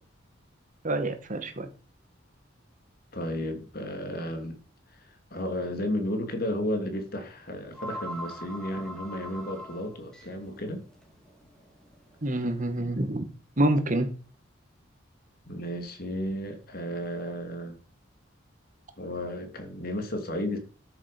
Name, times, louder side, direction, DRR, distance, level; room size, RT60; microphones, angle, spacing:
voice 1, 0.8-1.7 12.2-13.2 13.6-14.1, right 1 dB, 40° right, 1.9 m, -26 dB
voice 2, 3.1-4.6 4.9-10.8 15.5-17.8 19.0-20.6, left 1 dB, 50° left, 2.9 m, -33 dB
sound 1, 5.4-5.6 6.0-6.1 7.2-7.3 7.5-12.8, equal, 5° left, 2.8 m, -43 dB
13.0 x 7.2 x 5.2 m
head